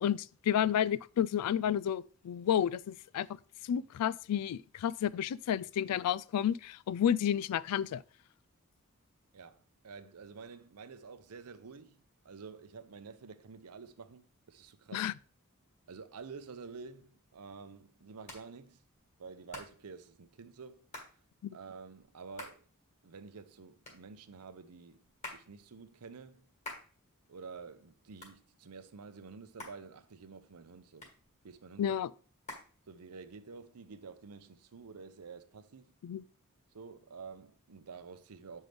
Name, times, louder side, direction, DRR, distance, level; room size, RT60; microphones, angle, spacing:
voice 1, 0.0-3.3 3.6-8.0 14.9-15.1 21.4-21.5 31.8-32.1 36.0-36.2, left 9 dB, 90° left, 0.3 m, -31 dB
voice 2, 9.3-15.1 15.9-18.8 19.2-20.9 21.5-22.7 23.0-25.1 25.3-26.5 27.3-31.1 31.4-32.0 32.9-36.0 36.7-38.7, right 5 dB, 85° right, 0.7 m, -49 dB
Hands, 16.8-33.4, left 1 dB, 30° left, 1.7 m, -52 dB
7.7 x 5.4 x 3.4 m
head